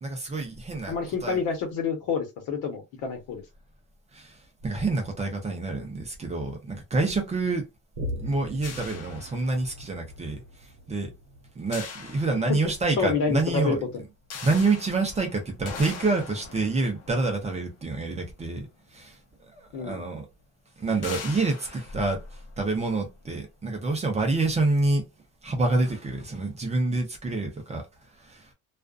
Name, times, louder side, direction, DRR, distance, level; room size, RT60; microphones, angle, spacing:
voice 1, 0.0-0.9 1.2-1.4 4.1-7.6 8.2-11.1 11.5-13.8 14.4-19.2 19.5-20.3 20.8-25.0 25.4-28.5, right 3 dB, 20° right, 0.6 m, -27 dB
voice 2, 0.9-3.4 13.0-13.8 19.7-20.0, left 5 dB, 65° left, 1.1 m, -28 dB
Boom, 7.9-14.9 15.4-15.5, left 1 dB, 70° right, 0.9 m, -41 dB
sound 1, 8.6-10.0 11.7-13.0 14.3-18.7 19.7-19.8 20.2-20.3 21.0-23.0, left 5 dB, 50° left, 0.7 m, -42 dB
2.4 x 2.3 x 2.4 m
cardioid pair, 155°, 34 cm